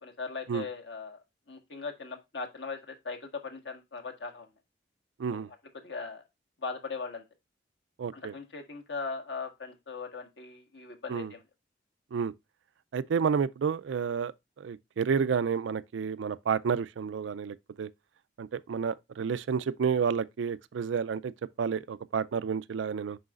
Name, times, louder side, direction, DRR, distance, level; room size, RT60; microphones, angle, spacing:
voice 1, 0.0-1.2 1.5-4.5 5.3-5.4 5.7-6.2 6.6-7.2 8.1-11.4, left 4 dB, 70° left, 1.6 m, -39 dB
voice 2, 8.0-8.3 11.1-11.3 12.1-12.3 12.9-14.3 14.6-17.9 18.4-21.3 21.6-23.2, right 6 dB, 80° right, 0.4 m, -30 dB
7.8 x 5.6 x 2.4 m
head